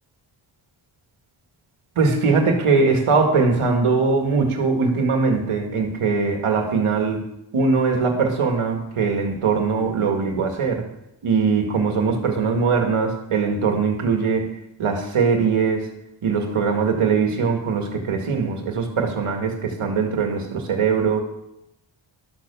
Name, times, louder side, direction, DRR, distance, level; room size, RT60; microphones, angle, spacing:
voice 1, 2.0-7.2 7.5-10.8 11.2-14.5 14.8-15.8 16.2-21.2, right 4 dB, 90° right, 3 dB, 1.9 m, -21 dB
12.0 x 6.8 x 6.9 m, 0.85 s
wide cardioid pair, 130°, 49 cm